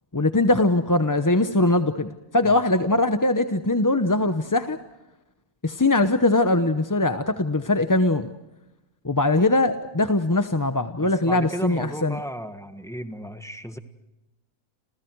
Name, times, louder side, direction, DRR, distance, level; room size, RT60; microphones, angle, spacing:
voice 1, 0.1-4.8 5.6-8.3 9.0-12.2, left 2 dB, 20° left, 9 dB, 0.7 m, -21 dB
voice 2, 11.0-13.8, equal, ahead, 8 dB, 1.5 m, -34 dB
30.0 x 28.5 x 4.7 m, 0.97 s
omnidirectional pair, 1.5 m